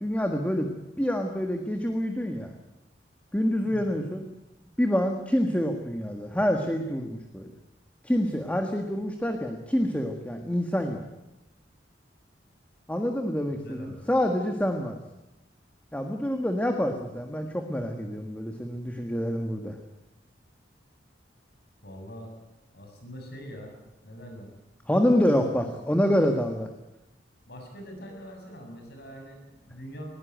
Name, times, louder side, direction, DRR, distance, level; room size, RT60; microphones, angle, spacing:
voice 1, 0.0-0.7 1.0-2.5 3.3-4.2 4.8-7.5 8.0-11.0 12.9-15.0 15.9-19.8 24.9-26.7, equal, 10° left, 4 dB, 1.5 m, -27 dB
voice 2, 3.6-4.0 13.4-14.1 21.8-22.3 22.7-24.5 27.4-30.0, equal, 60° left, 3 dB, 6.9 m, -43 dB
20.5 x 18.0 x 9.3 m, 0.96 s
head